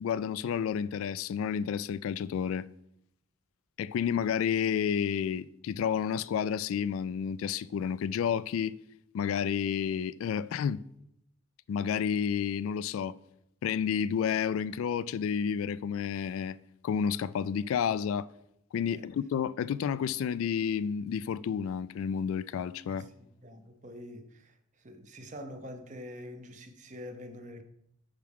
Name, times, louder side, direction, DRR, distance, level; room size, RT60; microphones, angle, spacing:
voice 1, 0.0-2.6 3.8-8.8 9.1-10.8 11.7-13.2 13.6-16.6 16.8-18.3 18.7-23.1, left 7 dB, 85° left, 0.3 m, -30 dB
voice 2, 22.9-27.6, left 1 dB, 35° right, 0.8 m, -46 dB
10.5 x 4.7 x 3.6 m
head